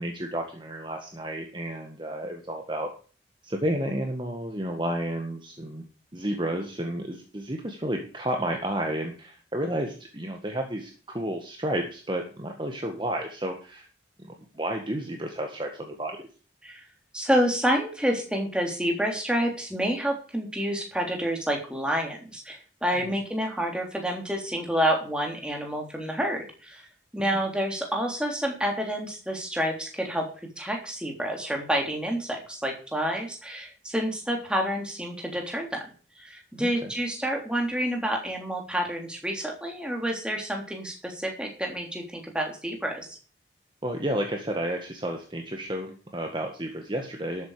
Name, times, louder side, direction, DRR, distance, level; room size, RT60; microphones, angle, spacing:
voice 1, 0.0-2.9 3.4-5.8 6.1-13.9 14.2-16.3 23.0-23.1 27.3-27.4 36.6-36.9 43.8-47.5, right 1 dB, 25° right, 3 dB, 1.7 m, -31 dB
voice 2, 17.1-26.9 27.1-30.3 30.6-35.9 36.2-43.1, equal, 5° right, 1 dB, 3.4 m, -28 dB
13.0 x 8.7 x 5.0 m, 0.38 s
head